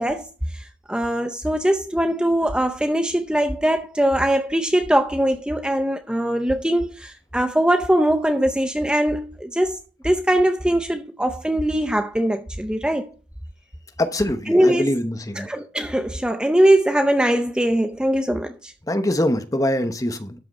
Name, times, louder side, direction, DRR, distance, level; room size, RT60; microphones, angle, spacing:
voice 1, 0.0-9.8 10.0-13.1 14.5-14.9 15.4-18.7, right 1 dB, 5° right, 0.6 m, -21 dB
voice 2, 14.0-15.5 18.9-20.3, left 1 dB, 15° left, 0.9 m, -23 dB
13.0 x 5.8 x 4.1 m
head